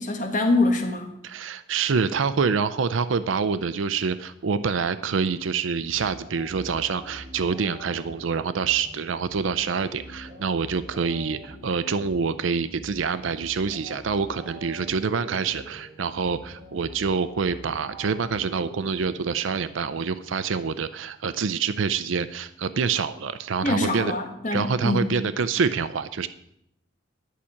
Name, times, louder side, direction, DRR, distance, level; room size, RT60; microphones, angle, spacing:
voice 1, 0.0-1.1 23.6-25.1, left 2 dB, 40° left, 4 dB, 1.6 m, -24 dB
voice 2, 1.2-24.1 24.5-26.3, right 5 dB, 80° right, 14 dB, 0.5 m, -26 dB
sound 1, 5.7-20.1, right 1 dB, 25° right, 4.1 m, -45 dB
11.0 x 5.8 x 8.5 m, 0.78 s
head